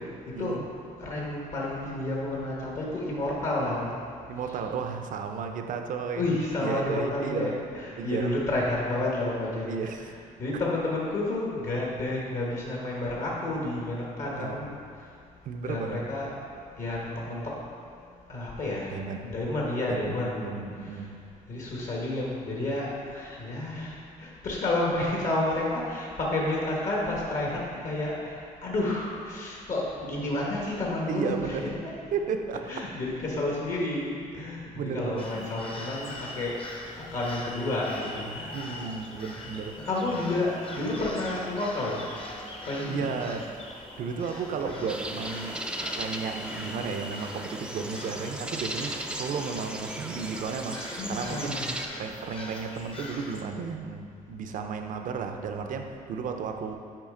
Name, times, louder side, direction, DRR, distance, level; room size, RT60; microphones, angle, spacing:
voice 1, 1.0-4.0 4.5-4.6 6.2-10.1 10.4-14.8 15.6-16.3 16.8-17.4 18.3-18.9 19.2-20.5 20.8-21.0 21.5-31.9 32.6-36.6 37.1-38.5 39.8-42.0 42.3-43.1 44.0-44.4 44.7-45.0 51.0-51.8, left 2 dB, 55° left, -4 dB, 1.4 m, -30 dB
voice 2, 4.3-7.6 8.0-8.3 9.7-10.1 14.2-14.6 15.4-16.1 18.9-19.2 19.9-20.2 20.4-21.2 31.1-31.7 32.1-32.7 34.8-35.5 38.5-39.8 42.9-43.5 44.0-51.6 52.0-56.8, right 5 dB, 60° right, 5 dB, 0.6 m, -34 dB
sound 1, 35.2-53.4, left 2 dB, 35° left, 1.0 m, -42 dB
sound 2, 44.9-51.9, right 1 dB, 5° right, 0.4 m, -37 dB
7.4 x 4.9 x 3.7 m, 2.3 s
cardioid pair, 95°, 15 cm